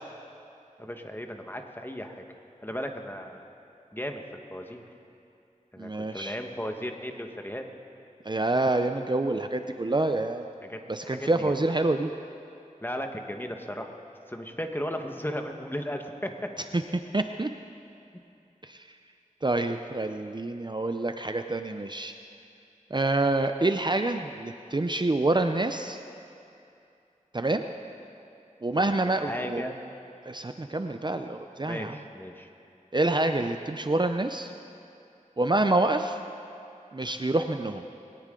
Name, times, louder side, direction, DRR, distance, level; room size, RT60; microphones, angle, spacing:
voice 1, 0.8-2.2 2.6-3.4 3.9-4.8 5.7-7.6 10.6-11.5 12.8-13.9 14.3-16.3 28.7-29.8 31.6-32.5, equal, 15° left, 4 dB, 1.4 m, -36 dB
voice 2, 5.8-6.4 8.2-10.5 10.9-12.1 16.7-16.8 17.1-17.5 18.6-18.9 19.4-22.1 22.9-26.0 27.3-27.7 28.6-29.6 30.2-32.0 32.9-34.5 35.4-36.2 36.9-37.8, right 2 dB, 35° right, 7 dB, 0.6 m, -27 dB
21.5 x 17.5 x 3.8 m, 2.6 s
wide cardioid pair, 50°, 14 cm